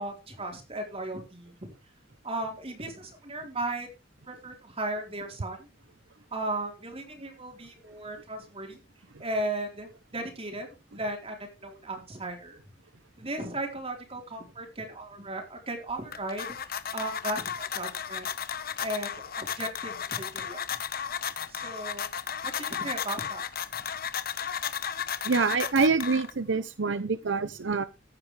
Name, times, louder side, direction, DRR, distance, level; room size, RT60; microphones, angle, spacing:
voice 1, 0.0-1.7 2.2-3.9 4.3-5.7 6.3-8.8 9.2-12.6 13.2-16.6 16.9-18.3 18.8-20.7 21.5-22.1 22.4-23.4 23.7-23.8, right 1 dB, 30° right, 2 dB, 4.1 m, -36 dB
sound 1, 15.9-26.5, left 8 dB, 55° left, 1.1 m, -34 dB
voice 2, 25.2-27.8, right 4 dB, 80° right, 13 dB, 0.8 m, -26 dB
15.5 x 9.7 x 3.3 m, 0.29 s
head